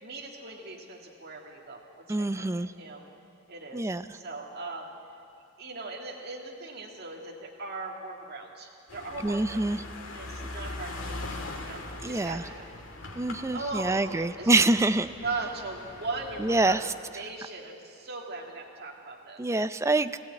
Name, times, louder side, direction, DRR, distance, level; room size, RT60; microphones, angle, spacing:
voice 1, 0.0-2.5 2.8-3.0 3.5-4.9 5.6-9.6 10.1-11.3 11.6-12.6 13.5-14.5 15.2-19.4, right 3 dB, 50° right, -1 dB, 2.0 m, -39 dB
voice 2, 2.1-2.7 3.7-4.0 9.2-9.8 12.0-12.4 13.2-15.1 16.4-16.9 19.4-20.2, right 2 dB, 15° right, 11 dB, 0.5 m, -25 dB
sound 1, 8.9-16.7, left 2 dB, 70° left, 2.1 m, -41 dB
19.5 x 15.0 x 8.9 m, 2.5 s
head